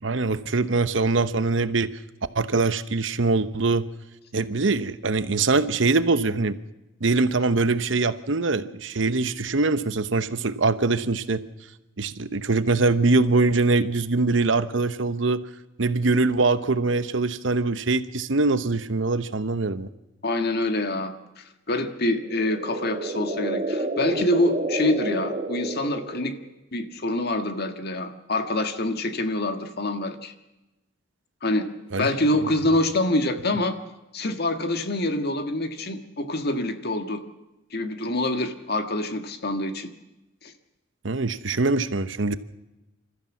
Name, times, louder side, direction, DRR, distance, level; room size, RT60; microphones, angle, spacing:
voice 1, 0.0-1.9 2.3-3.9 4.3-6.6 7.0-11.4 12.0-15.4 15.8-19.9 31.9-32.1 41.0-42.3, right 3 dB, 70° right, 13 dB, 0.9 m, -23 dB
voice 2, 20.2-26.4 26.7-30.3 31.4-31.7 32.0-33.8 34.1-37.2 37.7-39.9 40.4-40.5, left 1 dB, 55° left, 8 dB, 1.7 m, -26 dB
sound 1, 22.1-26.5, right 2 dB, 35° right, 1.3 m, -30 dB
27.5 x 14.0 x 7.3 m, 0.98 s
head